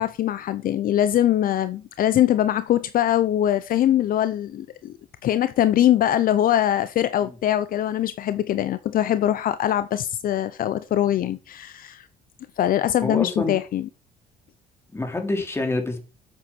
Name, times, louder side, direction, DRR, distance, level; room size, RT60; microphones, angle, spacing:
voice 1, 0.0-5.0 5.2-12.1 12.6-13.9, left 11 dB, 55° left, 0.7 m, -22 dB
voice 2, 13.0-13.6 14.9-16.0, left 2 dB, 15° left, 3.4 m, -26 dB
8.0 x 7.9 x 6.1 m
cardioid pair, 110°, 17 cm